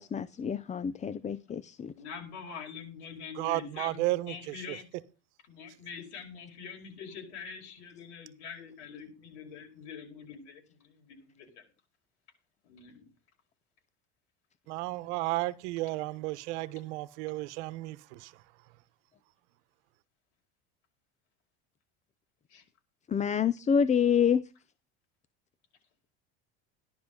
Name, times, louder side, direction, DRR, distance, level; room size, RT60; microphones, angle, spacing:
voice 1, 0.0-1.9 23.1-24.4, left 7 dB, 20° left, 0.5 m, -27 dB
voice 2, 1.9-4.9 5.5-11.7 12.6-13.1 22.5-22.6, left 6 dB, 85° left, 5.1 m, -45 dB
voice 3, 3.4-4.8 14.7-18.4, right 19 dB, 80° right, 1.1 m, -33 dB
14.5 x 11.5 x 3.8 m
supercardioid pair, 115°, 34 cm